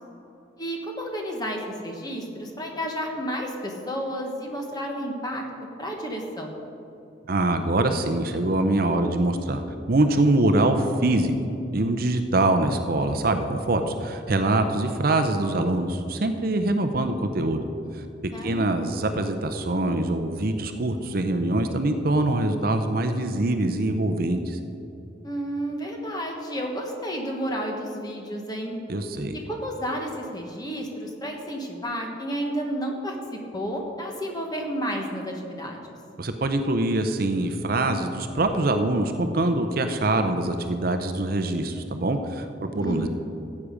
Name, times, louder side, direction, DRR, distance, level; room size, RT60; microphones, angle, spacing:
voice 1, 0.6-5.4 5.8-6.6 18.3-18.9 25.2-28.8 29.5-35.9 42.8-43.1, equal, 20° left, 1 dB, 1.3 m, -31 dB
voice 2, 7.3-9.6 9.9-11.3 11.7-17.7 18.2-24.6 28.9-29.4 36.2-43.1, right 2 dB, 50° right, 7 dB, 0.7 m, -24 dB
14.5 x 8.5 x 5.1 m, 2.8 s
head